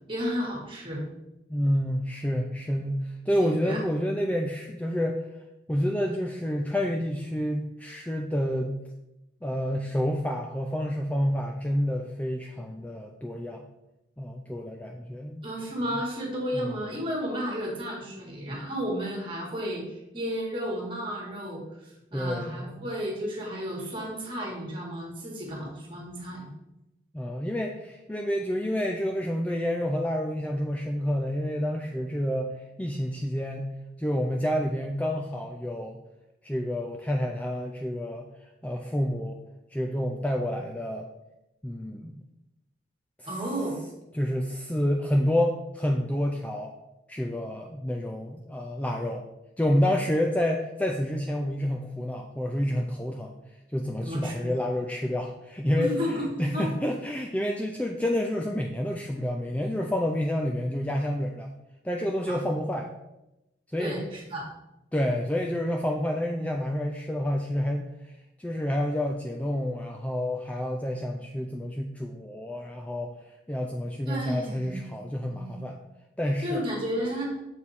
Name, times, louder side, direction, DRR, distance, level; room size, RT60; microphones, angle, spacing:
voice 1, 0.1-1.0 3.3-3.8 15.4-26.5 43.3-43.8 54.0-54.5 55.8-56.7 62.3-62.4 63.8-64.5 74.1-75.6 76.4-77.4, equal, 25° right, -2 dB, 1.8 m, -33 dB
voice 2, 1.5-5.3 5.7-8.8 9.4-13.7 14.2-15.5 16.5-16.7 22.1-22.8 27.1-33.7 34.0-36.0 36.4-38.3 38.6-39.4 39.7-41.1 41.6-42.2 43.2-43.3 44.1-46.8 47.1-49.3 49.6-53.3 53.7-61.5 61.8-62.9 63.7-64.0 64.9-68.1 68.4-73.1 73.5-75.8 76.2-76.6, equal, 5° left, 1 dB, 0.4 m, -29 dB
6.9 x 4.8 x 4.2 m, 0.92 s
head